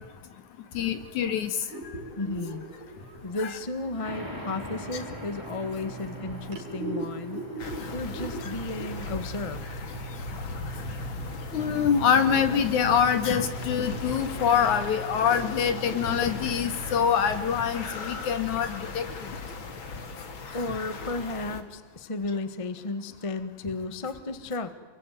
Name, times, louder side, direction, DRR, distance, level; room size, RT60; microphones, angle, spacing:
voice 1, 0.7-1.5 3.4-3.5 11.5-19.1, left 7 dB, 75° left, 10 dB, 3.4 m, -25 dB
sound 1, 1.7-17.1, right 3 dB, 85° right, 6.0 m, -42 dB
voice 2, 2.2-2.6 3.2-9.6 20.5-24.7, left 3 dB, 25° left, 11 dB, 0.7 m, -34 dB
sound 2, 4.0-11.2, equal, 5° right, 4.6 m, -44 dB
sound 3, 7.6-21.6, left 3 dB, 45° left, 2.7 m, -37 dB
28.5 x 22.0 x 9.4 m, 1.4 s
omnidirectional pair, 3.5 m